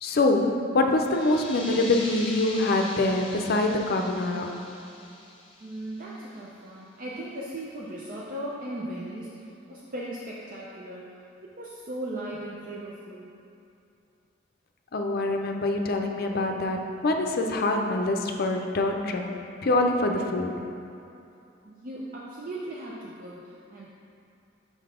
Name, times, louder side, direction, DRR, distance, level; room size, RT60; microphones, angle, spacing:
voice 1, 0.0-4.6 14.9-19.2 19.6-20.6, left 2 dB, 55° left, 3 dB, 0.5 m, -25 dB
sound 1, 1.0-6.4, left 2 dB, 30° left, 0.9 m, -41 dB
voice 2, 5.6-11.0 11.6-13.3 21.6-23.9, right 1 dB, 45° right, -5 dB, 0.6 m, -37 dB
6.3 x 3.9 x 5.0 m, 2.7 s
head